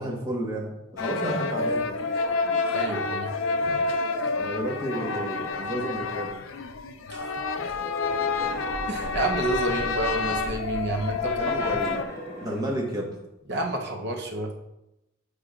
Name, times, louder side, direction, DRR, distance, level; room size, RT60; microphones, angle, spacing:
voice 1, 0.0-2.1 4.4-6.4 11.4-12.0 12.4-13.1, equal, 20° right, -2 dB, 1.3 m, -31 dB
sound 1, 1.0-12.0, left 3 dB, 80° left, 0.5 m, -28 dB
voice 2, 2.7-3.3 7.1-7.4 8.9-11.7 13.5-14.5, right 2 dB, 60° right, 2 dB, 0.8 m, -29 dB
sound 2, 4.6-5.4 7.6-10.2 11.5-12.9, left 1 dB, 50° left, 1.3 m, -41 dB
8.3 x 5.0 x 2.4 m, 0.90 s
head